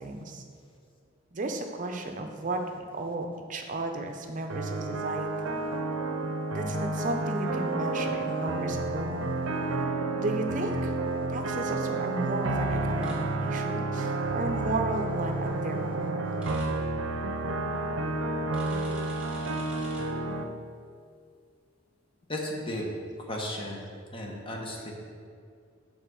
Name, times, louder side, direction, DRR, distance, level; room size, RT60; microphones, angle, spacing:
voice 1, 0.0-0.4 1.3-5.3 6.5-9.4 10.1-10.9 11.3-16.3, right 2 dB, 40° right, 4 dB, 0.6 m, -34 dB
sound 1, 4.5-20.4, right 2 dB, 80° right, 0.5 m, -30 dB
sound 2, 13.0-13.1 16.4-16.6 18.5-20.0, right 1 dB, 5° right, 1.4 m, -47 dB
voice 2, 22.3-22.8 23.3-23.8 24.1-24.9, left 1 dB, 25° left, -1 dB, 0.9 m, -34 dB
5.6 x 4.2 x 6.2 m, 2.3 s
head